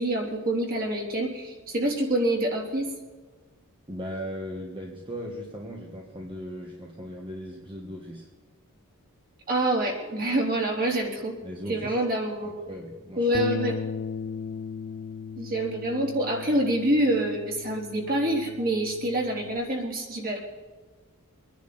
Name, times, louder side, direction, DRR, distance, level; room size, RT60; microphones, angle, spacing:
voice 1, 0.0-2.9 9.5-11.3 11.7-12.7 13.2-13.8 15.4-20.4, right 1 dB, 40° right, -1 dB, 3.7 m, -26 dB
voice 2, 3.9-8.3 11.4-11.9 12.4-13.3, equal, 25° right, -1 dB, 1.6 m, -38 dB
Bass guitar, 13.3-19.6, left 6 dB, 55° left, 0.5 m, -37 dB
24.5 x 10.5 x 4.3 m, 1.3 s
head